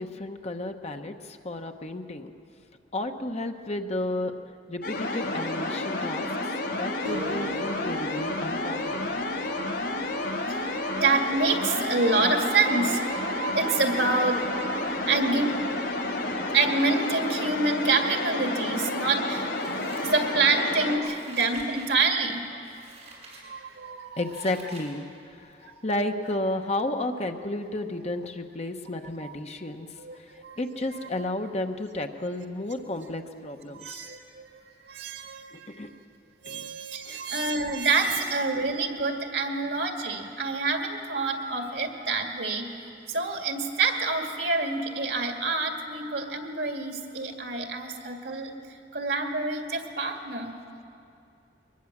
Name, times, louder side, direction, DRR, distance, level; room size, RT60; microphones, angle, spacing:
voice 1, 0.0-2.3 2.9-4.3 4.7-9.2 21.0-21.1 24.2-34.1 35.5-35.9 36.5-36.8 37.0-37.5, left 1 dB, 40° left, 5 dB, 1.1 m, -33 dB
sound 1, 4.8-21.0, left 2 dB, 85° left, 4.5 m, -30 dB
sound 2, 7.0-12.2, right 1 dB, 90° right, 2.9 m, -43 dB
voice 2, 10.2-15.9 16.5-19.5 19.9-22.7 23.4-24.3 25.6-25.8 29.2-29.3 30.0-30.6 33.7-34.5 34.8-35.9 36.4-42.7 43.1-48.5 48.9-50.6, right 3 dB, 75° right, 4 dB, 2.1 m, -27 dB
Scissors, 19.5-20.6 21.0-22.0 22.6-23.4 23.9-24.9 25.3-25.4, right 2 dB, 35° right, 6.8 m, -47 dB
22.5 x 20.0 x 7.4 m, 2.5 s
head